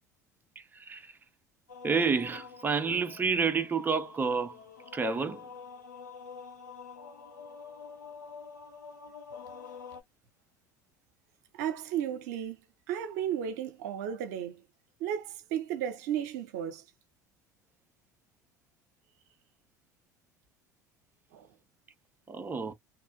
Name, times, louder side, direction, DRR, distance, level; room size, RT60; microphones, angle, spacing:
voice 1, 0.6-1.2 1.8-4.6 4.9-5.5 22.3-22.7, right 5 dB, 20° right, 0.7 m, -29 dB
sound 1, 1.7-10.0, left 5 dB, 85° left, 0.7 m, -47 dB
voice 2, 11.5-12.6 12.9-14.7 15.0-16.8 21.3-21.5, right 9 dB, 65° right, 0.7 m, -34 dB
3.1 x 2.4 x 2.3 m
figure-of-eight pair, 65°, 10 cm